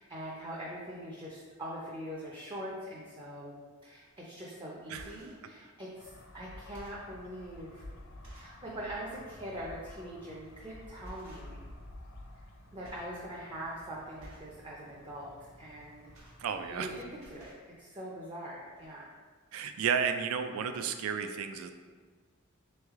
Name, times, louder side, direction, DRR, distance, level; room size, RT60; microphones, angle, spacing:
voice 1, 0.0-3.6 3.8-7.8 8.3-11.6 12.7-16.1 16.7-19.1, equal, 25° right, -5 dB, 0.5 m, -43 dB
sound 1, 4.0-4.2 4.8-5.5 6.1-6.2 6.6-7.1 7.7-7.8 8.2-8.6 9.0-9.2 10.4-10.6 11.0-11.8 12.1-12.5 12.8-13.2 13.5-13.7 14.2-14.6 15.7-16.9 17.1-17.7 18.4-18.5 18.7-18.9, right 1 dB, 65° right, 1.1 m, -54 dB
sound 2, 5.9-17.1, left 1 dB, 65° left, 0.6 m, -52 dB
voice 2, 16.4-16.9 19.5-21.7, right 6 dB, 85° right, 8 dB, 0.3 m, -32 dB
3.5 x 3.2 x 3.5 m, 1.5 s
head